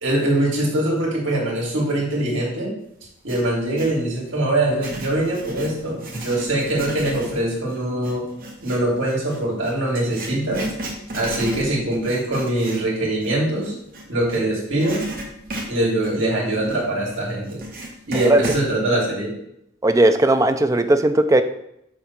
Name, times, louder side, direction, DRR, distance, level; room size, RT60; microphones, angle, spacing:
voice 1, 0.0-2.7 3.2-8.3 8.6-10.7 11.1-13.7 14.1-15.0 15.7-17.6 18.1-19.3, right 1 dB, 70° right, -3 dB, 2.8 m, -23 dB
Writing, 3.0-4.0 4.6-14.4 14.8-18.7, right 1 dB, 50° right, 1.6 m, -35 dB
voice 2, 18.1-18.5 19.8-21.4, right 1 dB, 15° right, 8 dB, 0.4 m, -17 dB
7.1 x 3.6 x 5.9 m, 0.76 s
head